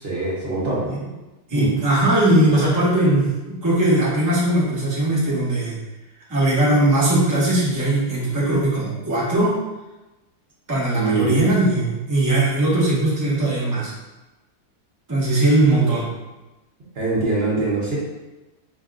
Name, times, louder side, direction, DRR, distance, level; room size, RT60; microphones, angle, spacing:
voice 1, 0.0-0.8 1.5-1.7 10.9-11.5 16.9-17.9, right 3 dB, 45° right, -6 dB, 1.0 m, -23 dB
voice 2, 1.5-5.8 6.3-9.6 10.7-13.9 15.1-16.0, right 1 dB, 20° right, -7 dB, 0.5 m, -19 dB
4.2 x 2.8 x 2.4 m, 1.1 s
omnidirectional pair, 1.7 m